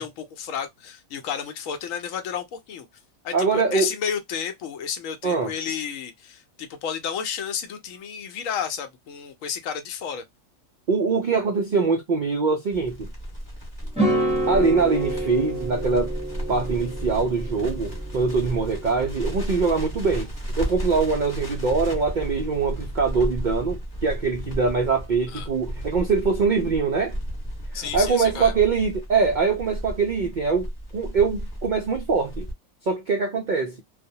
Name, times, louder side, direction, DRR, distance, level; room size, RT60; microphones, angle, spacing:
voice 1, 0.0-2.9 3.2-10.2 25.3-25.5 27.7-28.5, left 7 dB, 75° left, 0.9 m, -31 dB
voice 2, 3.3-3.9 5.2-5.5 10.9-13.1 14.5-16.1 16.5-20.3 20.6-27.2 27.7-32.5 32.8-33.8, right 4 dB, 70° right, 0.4 m, -23 dB
Crackle, 12.7-32.5, equal, 20° left, 1.0 m, -33 dB
sound 1, 13.9-19.1, right 1 dB, 5° right, 0.5 m, -28 dB
2.3 x 2.1 x 2.6 m
omnidirectional pair, 1.4 m